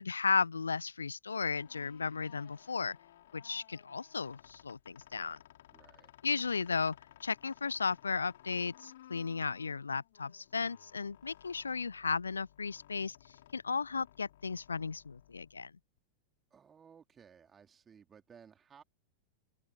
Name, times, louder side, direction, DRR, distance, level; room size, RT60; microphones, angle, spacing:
voice 1, 0.0-3.0 3.3-5.4 6.2-7.0 7.2-13.2 13.5-15.7, left 5 dB, 75° left, 0.3 m, -35 dB
sound 1, 1.4-16.0, left 13 dB, 55° left, 3.5 m, -59 dB
voice 2, 5.7-6.1 16.5-18.8, right 7 dB, 20° right, 3.4 m, -58 dB
open air
figure-of-eight pair, 90°, 0 cm